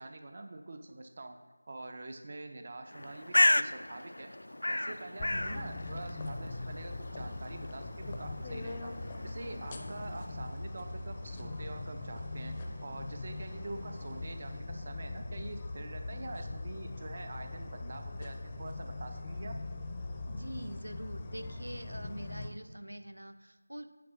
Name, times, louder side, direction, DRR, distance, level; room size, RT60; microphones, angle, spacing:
voice 1, 0.0-1.4 1.7-4.3 4.7-8.9 9.2-12.5 12.8-19.5, right 2 dB, 35° right, 6 dB, 0.6 m, -45 dB
Bird, 2.9-10.5, left 1 dB, 65° left, 0.3 m, -34 dB
sound 1, 5.2-22.5, left 2 dB, 15° left, 0.6 m, -41 dB
sound 2, 7.1-14.6, right 1 dB, 55° right, 2.3 m, -56 dB
voice 2, 20.3-23.9, right 1 dB, 80° right, 10 dB, 0.8 m, -44 dB
9.2 x 4.8 x 6.4 m, 1.4 s
figure-of-eight pair, 170°, 0 cm